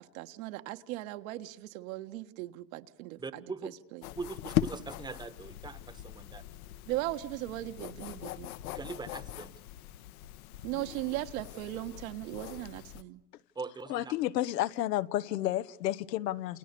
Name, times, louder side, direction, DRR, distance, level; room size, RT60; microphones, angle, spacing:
voice 1, 0.0-3.2 3.9-4.0 6.9-8.5 10.6-13.2, right 16 dB, 55° right, 1.5 m, -38 dB
voice 2, 3.2-3.7 4.1-6.4 8.7-9.5 13.5-14.1, right 4 dB, 10° right, 1.3 m, -41 dB
sound 1, 4.0-13.0, left 12 dB, 60° left, 1.3 m, -39 dB
voice 3, 13.9-16.6, left 14 dB, 80° left, 1.3 m, -31 dB
29.5 x 29.0 x 6.9 m
supercardioid pair, 145°, 49 cm